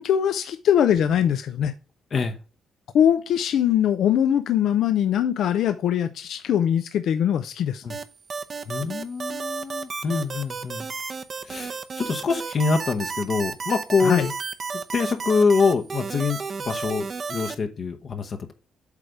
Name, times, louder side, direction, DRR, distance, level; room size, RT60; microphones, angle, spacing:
voice 1, 0.0-1.7 2.9-7.8 14.0-14.3, left 9 dB, 75° left, 0.5 m, -21 dB
sound 1, 7.9-17.5, right 5 dB, 40° right, 0.7 m, -32 dB
voice 2, 8.7-10.9 11.4-14.3 14.7-16.4 16.6-18.5, left 4 dB, 50° left, 0.9 m, -25 dB
8.3 x 3.3 x 5.0 m
cardioid pair, 90°, 0 cm